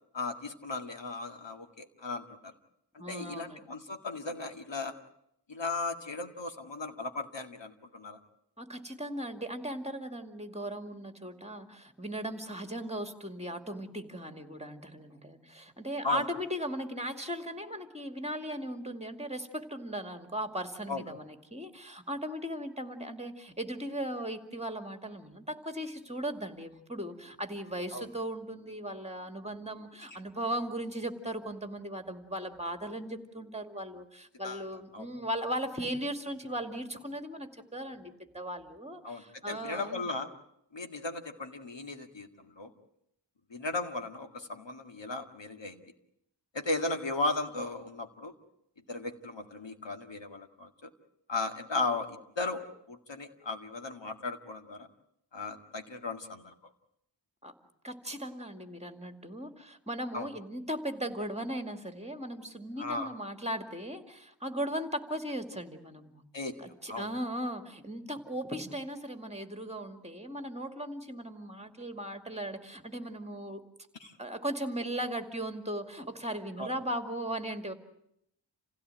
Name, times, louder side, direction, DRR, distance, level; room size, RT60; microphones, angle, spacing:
voice 1, 0.1-2.5 3.1-5.0 5.5-8.2 16.0-16.2 20.9-21.0 27.9-28.1 34.4-34.6 34.9-35.1 39.0-40.3 40.7-42.7 43.5-45.8 46.5-48.3 48.9-50.9 51.3-54.9 55.3-56.5 60.1-60.3 62.8-63.1 66.3-66.6 66.9-67.1 74.0-74.1 76.6-76.7, left 3 dB, 70° left, 6 dB, 2.1 m, -36 dB
voice 2, 3.0-3.7 8.6-40.1 57.4-57.5 57.8-66.2 66.6-73.6 74.2-77.7, right 1 dB, 15° right, 7 dB, 2.4 m, -37 dB
27.5 x 16.5 x 9.1 m, 0.78 s
wide cardioid pair, 45°, 45 cm